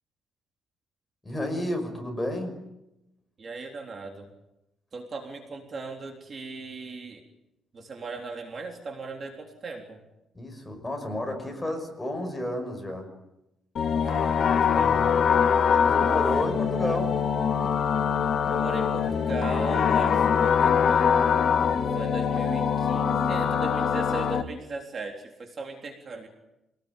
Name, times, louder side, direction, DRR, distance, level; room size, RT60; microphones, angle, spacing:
voice 1, 1.2-2.6 10.3-13.1 14.7-15.0 15.7-17.2, left 1 dB, 10° left, 3 dB, 5.8 m, -31 dB
voice 2, 3.4-4.3 4.9-7.2 7.7-10.0 13.9-15.2 16.2-16.4 18.5-21.1 22.0-26.3, right 3 dB, 35° right, 2 dB, 3.6 m, -38 dB
sound 1, 13.8-24.4, left 7 dB, 50° left, 2.1 m, -23 dB
27.5 x 19.5 x 9.1 m, 0.88 s
cardioid pair, 160°, 0 cm